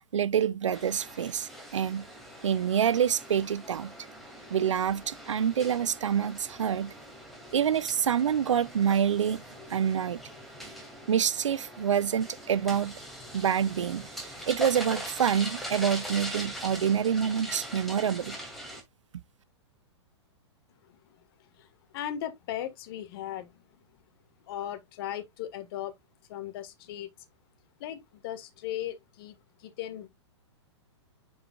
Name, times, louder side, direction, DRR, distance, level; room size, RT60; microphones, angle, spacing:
voice 1, 0.1-2.0 2.4-3.9 4.5-6.9 7.5-9.4 9.7-10.2 11.1-12.9 13.3-18.4, right 8 dB, 90° right, 0.5 m, -27 dB
sound 1, 0.7-18.8, equal, ahead, 2.4 m, -42 dB
voice 2, 20.7-23.8 24.5-25.9 26.3-27.1 27.8-30.1, left 11 dB, 50° left, 1.6 m, -38 dB
9.4 x 4.8 x 2.4 m
hypercardioid pair, 125°, 15 cm